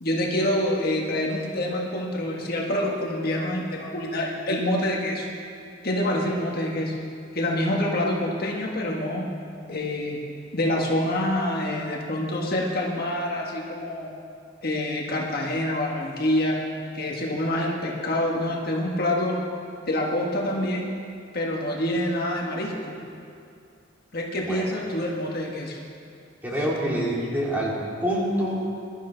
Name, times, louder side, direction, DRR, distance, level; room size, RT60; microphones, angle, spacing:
voice 1, 0.0-5.3 5.8-6.9 7.3-9.3 9.7-10.2 10.5-14.1 14.6-16.6 16.9-19.4 19.9-20.9 21.3-23.0 24.1-25.8, left 1 dB, 50° left, -1 dB, 1.6 m, -26 dB
voice 2, 26.4-27.7 28.0-28.6, equal, 10° right, -5 dB, 3.0 m, -26 dB
21.5 x 12.5 x 4.0 m, 2.4 s
head